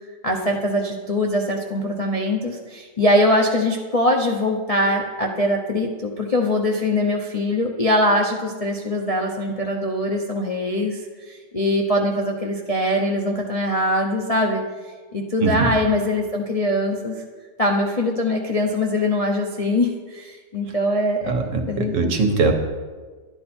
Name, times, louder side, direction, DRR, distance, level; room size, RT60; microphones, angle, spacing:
voice 1, 0.2-14.6 15.1-17.2 17.6-21.3 21.7-22.1 22.4-22.5, left 1 dB, 40° left, 0 dB, 0.5 m, -22 dB
voice 2, 15.4-15.7 21.3-22.5, right 4 dB, 75° right, 4 dB, 1.8 m, -21 dB
11.5 x 10.5 x 4.3 m, 1.4 s
omnidirectional pair, 1.9 m